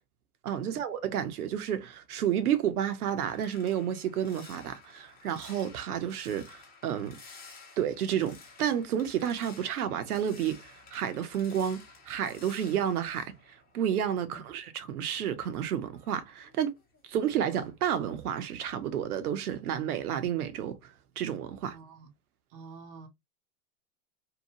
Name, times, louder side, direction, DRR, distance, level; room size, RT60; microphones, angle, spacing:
voice 1, 0.4-7.2 7.8-13.4 13.7-16.7 17.1-20.9 21.2-21.8, right 9 dB, 70° right, 0.7 m, -31 dB
sound 1, 2.7-14.2 14.5-17.2 17.5-17.9 18.2-18.5, left 4 dB, 20° left, 0.9 m, -54 dB
voice 2, 21.7-22.1 22.5-23.1, right 5 dB, 25° right, 0.3 m, -48 dB
2.8 x 2.2 x 2.7 m
hypercardioid pair, 110°, 46 cm